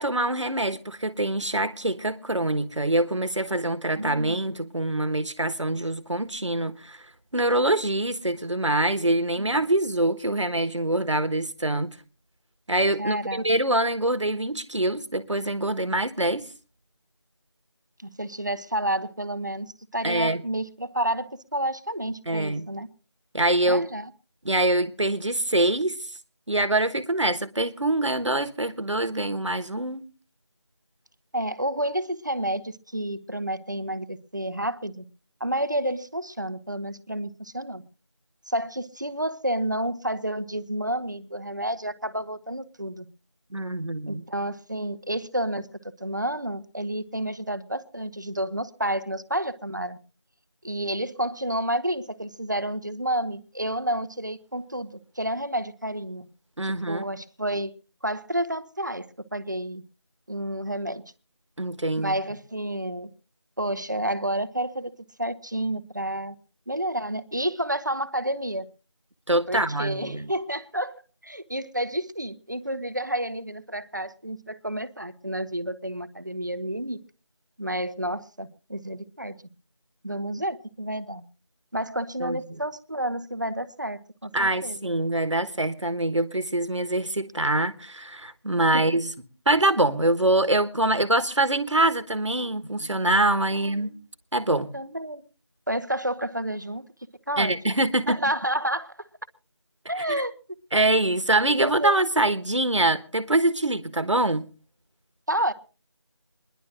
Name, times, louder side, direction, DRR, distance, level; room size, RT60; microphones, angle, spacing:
voice 1, 0.0-7.0 7.3-11.9 12.7-16.5 20.0-20.4 22.3-22.7 23.3-23.9 24.4-26.0 26.5-30.0 43.5-44.2 56.6-57.1 61.6-62.1 69.3-70.3 82.2-82.4 84.3-89.1 89.5-93.9 94.3-94.7 97.4-98.2 100.0-100.2 100.7-104.5, right 1 dB, 80° right, 1.2 m, -24 dB
voice 2, 4.0-4.4 9.4-9.5 13.0-13.5 18.0-22.9 23.7-24.1 31.3-35.0 35.4-37.8 38.5-43.1 44.1-45.7 46.0-50.0 50.6-54.9 55.2-56.3 56.9-57.7 58.0-59.1 59.3-59.8 60.3-61.0 62.0-63.1 63.6-64.9 65.2-66.3 66.7-68.7 69.5-71.0 71.2-77.0 77.6-79.4 80.0-81.2 81.7-84.9 88.7-88.9 93.5-94.0 94.7-95.3 95.7-96.8 97.3-97.5 98.0-98.9 99.9-100.3 101.5-101.9 105.3-105.5, right 1 dB, 40° right, 0.7 m, -30 dB
27.5 x 11.0 x 2.5 m
figure-of-eight pair, 175°, 15 cm